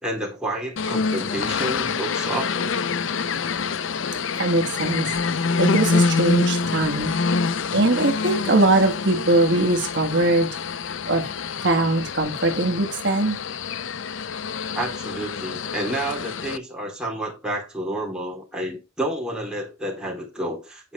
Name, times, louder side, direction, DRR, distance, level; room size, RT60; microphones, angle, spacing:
voice 1, 0.0-2.8 14.7-20.9, right 1 dB, 5° right, 3.5 m, -30 dB
sound 1, 0.8-16.6, left 4 dB, 70° left, 0.6 m, -26 dB
voice 2, 4.4-5.1 5.6-7.1 7.7-10.5 11.1-11.2 11.6-13.4, right 2 dB, 60° right, 1.6 m, -21 dB
9.1 x 5.5 x 4.9 m
head